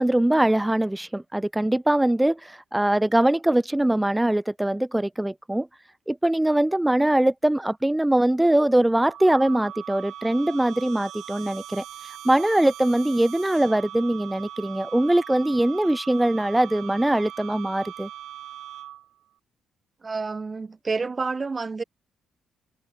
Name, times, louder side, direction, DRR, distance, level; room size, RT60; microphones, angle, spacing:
voice 1, 0.0-5.7 6.1-18.1, right 1 dB, 10° right, 0.6 m, -22 dB
sound 1, 8.8-19.2, right 12 dB, 75° right, 6.6 m, -41 dB
voice 2, 20.0-21.8, right 4 dB, 30° right, 3.9 m, -29 dB
cardioid pair, 90°, 0 cm